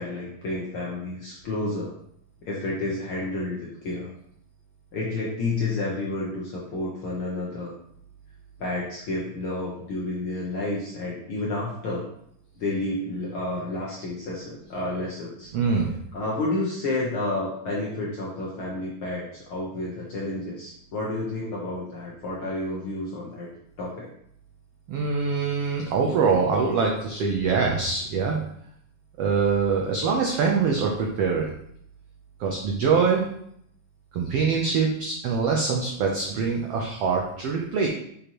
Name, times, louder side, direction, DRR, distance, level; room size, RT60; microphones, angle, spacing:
voice 1, 0.0-2.0 2.4-4.1 4.9-7.7 8.6-12.1 12.6-15.5 16.1-23.5 23.8-24.1, left 2 dB, 65° left, -4 dB, 1.3 m, -30 dB
voice 2, 15.5-15.9 24.9-28.4 29.2-31.4 32.4-33.2 34.1-37.9, right 5 dB, 80° right, 0 dB, 1.3 m, -24 dB
6.6 x 5.6 x 3.0 m, 0.70 s
omnidirectional pair, 3.7 m